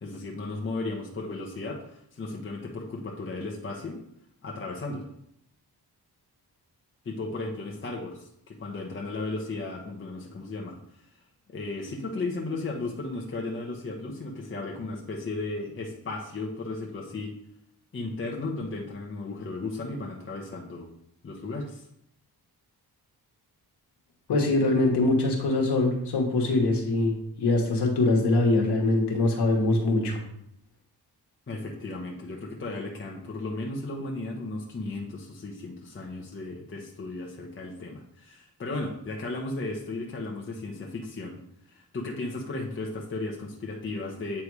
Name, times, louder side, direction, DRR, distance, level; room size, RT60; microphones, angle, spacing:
voice 1, 0.0-4.0 4.4-5.1 7.0-11.2 11.5-17.3 17.9-20.9 21.2-21.9 31.5-41.4 41.7-44.4, left 2 dB, 30° left, -1 dB, 1.0 m, -35 dB
voice 2, 24.3-30.2, left 2 dB, 80° left, -1 dB, 1.4 m, -23 dB
8.3 x 3.4 x 4.7 m, 0.72 s
wide cardioid pair, 110°, 40 cm